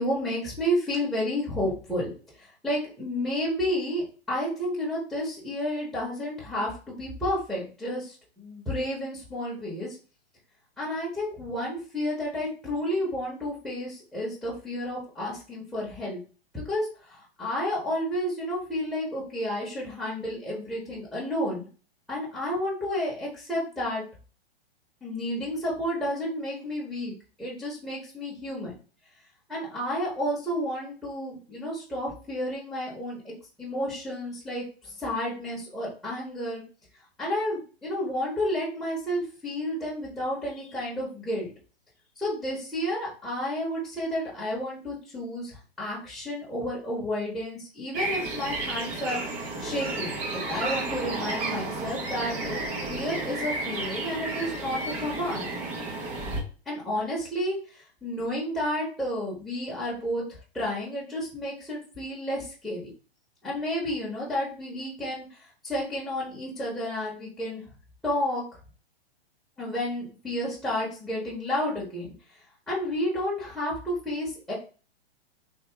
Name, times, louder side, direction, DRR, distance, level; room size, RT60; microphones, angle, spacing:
voice 1, 0.0-2.1 2.4-10.0 10.8-16.2 16.5-21.7 22.1-24.0 25.0-28.7 29.5-33.3 33.6-36.6 37.2-41.5 42.2-49.2 49.6-52.6 52.9-55.5 56.7-62.8 63.4-65.4 65.6-67.6 68.0-68.4 69.6-72.1 72.7-74.5, equal, ahead, -7 dB, 1.1 m, -31 dB
sound 1, 47.9-56.4, right 2 dB, 20° right, 0.7 m, -32 dB
3.5 x 2.9 x 3.0 m, 0.37 s
figure-of-eight pair, 110°, 31 cm